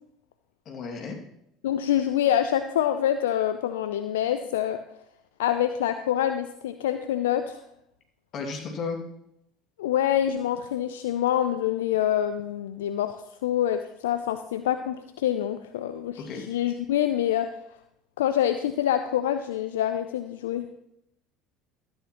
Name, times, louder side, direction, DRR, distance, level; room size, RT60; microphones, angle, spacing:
voice 1, 0.7-1.2 8.3-9.0 16.2-16.4, left 4 dB, 45° left, 2 dB, 2.3 m, -33 dB
voice 2, 1.6-4.8 5.4-7.6 9.8-13.2 13.4-17.5 18.2-20.7, left 11 dB, 75° left, 10 dB, 0.4 m, -26 dB
13.5 x 9.4 x 3.0 m, 0.79 s
figure-of-eight pair, 65°, 0 cm